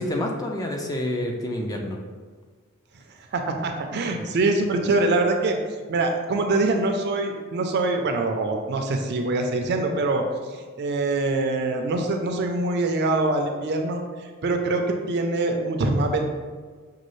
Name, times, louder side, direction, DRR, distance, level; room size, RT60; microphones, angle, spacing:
voice 1, 0.0-2.0, left 1 dB, 15° left, 1 dB, 0.3 m, -28 dB
voice 2, 3.3-5.6 5.9-10.2 10.8-14.0 14.4-16.2, right 2 dB, 50° right, 4 dB, 0.4 m, -24 dB
5.3 x 2.3 x 3.1 m, 1.5 s
head